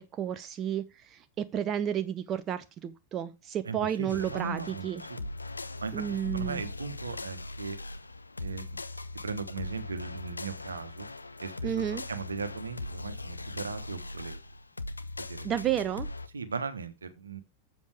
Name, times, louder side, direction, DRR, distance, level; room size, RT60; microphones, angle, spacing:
voice 1, 0.0-5.0 5.9-6.6 11.6-12.0 15.4-16.1, right 9 dB, 30° right, 0.6 m, -32 dB
voice 2, 3.6-5.3 5.8-7.8 8.4-8.6 9.2-11.1 11.4-14.4 15.2-15.5 16.3-17.4, right 5 dB, 75° right, 1.2 m, -38 dB
sound 1, 4.1-16.3, left 2 dB, 80° left, 0.6 m, -40 dB
7.6 x 7.2 x 4.9 m
figure-of-eight pair, 90°, 0 cm